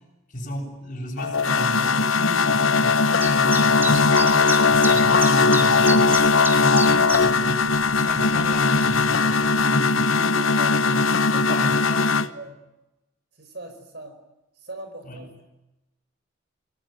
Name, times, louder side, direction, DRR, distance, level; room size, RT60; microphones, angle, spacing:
voice 1, 0.3-6.3 6.5-10.4 10.8-12.3 15.0-15.2, equal, 40° left, 2 dB, 7.8 m, -32 dB
sound 1, 1.2-12.3, left 4 dB, 70° left, 1.0 m, -19 dB
Chirp tweet, 3.2-9.7, right 2 dB, 10° right, 2.7 m, -33 dB
voice 2, 10.6-10.9 11.3-12.0 12.3-12.6 13.4-14.2 14.6-15.4, right 2 dB, 50° right, 7 dB, 5.1 m, -40 dB
28.5 x 19.5 x 9.3 m, 0.98 s
head